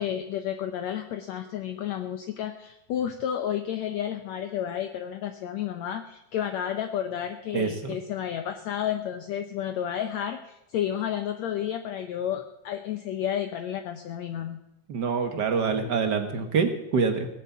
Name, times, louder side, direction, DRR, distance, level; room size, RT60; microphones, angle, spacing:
voice 1, 0.0-14.6, left 10 dB, 70° left, 7 dB, 1.9 m, -31 dB
voice 2, 7.5-8.0 14.9-17.3, right 5 dB, 55° right, 6 dB, 1.2 m, -26 dB
18.5 x 8.7 x 8.3 m, 0.87 s
omnidirectional pair, 3.7 m